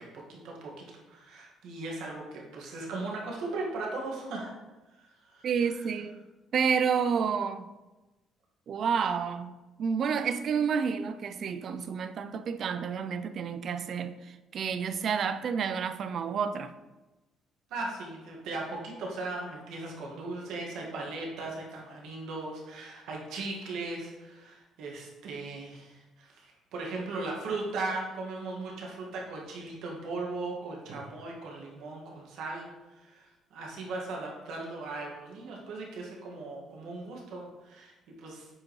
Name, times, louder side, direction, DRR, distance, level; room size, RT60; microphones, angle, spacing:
voice 1, 0.0-4.5 5.0-5.8 17.7-38.5, right 3 dB, 75° right, 1.9 m, -38 dB
voice 2, 5.4-6.2 6.5-7.6 8.7-16.8, right 6 dB, 45° right, 0.4 m, -30 dB
8.5 x 4.9 x 3.2 m
cardioid pair, 145°, 0 cm